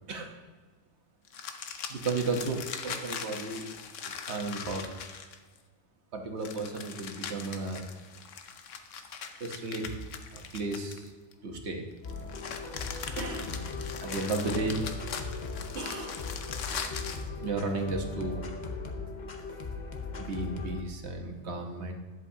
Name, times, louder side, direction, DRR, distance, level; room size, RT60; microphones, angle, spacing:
sound 1, 1.3-5.6 6.4-11.3 12.0-17.3, left 6 dB, 90° left, 1.1 m, -40 dB
voice 1, 1.9-3.7 4.3-4.9 6.1-7.8 9.4-10.0 10.3-11.1 11.4-11.8 13.2-13.6 14.0-14.8 15.7-16.2 17.4-18.5 20.2-21.9, right 3 dB, 65° right, 3 dB, 1.3 m, -34 dB
sound 2, 12.0-20.8, left 4 dB, 40° left, 0.9 m, -38 dB
11.0 x 7.7 x 2.7 m, 1.4 s
omnidirectional pair, 1.2 m